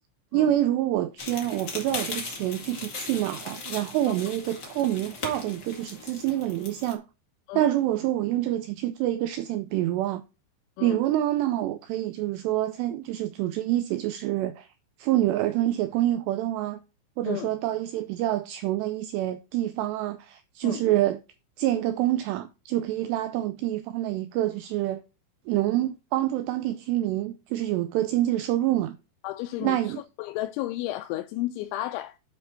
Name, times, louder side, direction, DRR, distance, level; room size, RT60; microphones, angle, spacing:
voice 1, 0.3-7.0 7.5-10.2 10.8-14.7 15.0-16.8 17.2-21.2 21.6-25.0 25.5-29.0 29.6-30.0, right 13 dB, 80° right, 2.5 m, -27 dB
sound 1, 1.2-6.9, left 4 dB, 40° left, 1.5 m, -38 dB
voice 2, 29.2-32.2, left 15 dB, 90° left, 3.0 m, -33 dB
9.7 x 4.6 x 4.3 m
omnidirectional pair, 5.3 m